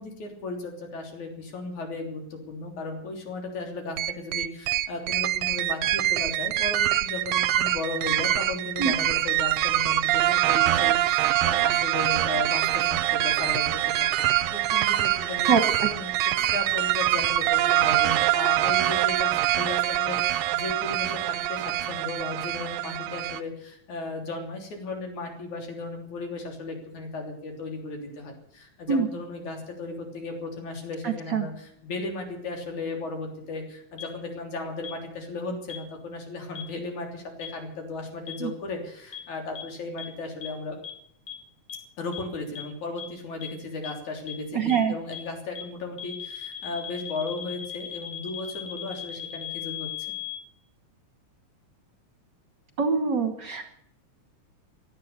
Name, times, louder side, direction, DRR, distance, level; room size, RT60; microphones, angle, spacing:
voice 1, 0.0-15.5 15.9-40.8 42.0-49.9, left 3 dB, 80° left, 3 dB, 4.8 m, -35 dB
sound 1, 4.0-23.4, right 14 dB, 75° right, 1.7 m, -24 dB
voice 2, 15.5-15.9 28.9-29.1 31.0-31.5 38.4-38.5 44.5-44.9 52.8-53.7, right 6 dB, 45° right, 7 dB, 1.6 m, -24 dB
sound 2, 34.0-34.1 34.8-34.9 35.7-35.8 36.6-36.7 37.4-37.5 38.3-38.4 39.1-39.2 39.6-39.7 40.0-40.1 40.4-40.5 40.8-40.9 41.3-41.4 41.7-41.8 42.1-42.2 42.6-42.7 43.0-43.1 43.4-43.5 43.8-43.9 44.3-44.4 44.7-44.8 45.1-45.2 45.6-45.7 46.0-50.4, left 11 dB, 55° left, 3.0 m, -37 dB
17.5 x 11.5 x 6.8 m, 0.68 s
omnidirectional pair, 3.3 m